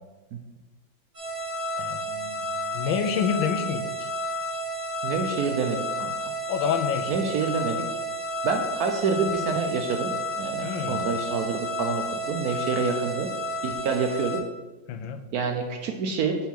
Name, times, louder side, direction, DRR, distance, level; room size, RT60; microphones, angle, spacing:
sound 1, 1.1-14.4, equal, 25° right, 2.1 m, -31 dB
voice 1, 1.8-4.1 6.5-7.3 10.6-11.1 14.9-15.2, left 7 dB, 90° left, 9 dB, 1.4 m, -29 dB
voice 2, 5.0-6.1 7.1-7.8 8.4-10.1 10.4-13.3 13.6-14.4 15.3-16.4, right 5 dB, 65° right, 4 dB, 0.9 m, -27 dB
5.5 x 4.5 x 5.8 m, 1.2 s
omnidirectional pair, 2.1 m